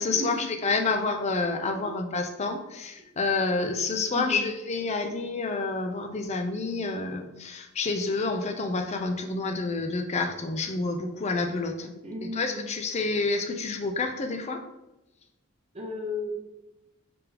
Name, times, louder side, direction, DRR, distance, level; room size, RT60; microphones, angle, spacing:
voice 1, 0.0-12.0 12.2-14.6, left 3 dB, 30° left, 5 dB, 0.4 m, -29 dB
voice 2, 4.1-4.5 12.0-12.7 15.7-16.4, left 1 dB, 30° right, -2 dB, 0.8 m, -34 dB
3.7 x 3.4 x 2.9 m, 0.95 s
head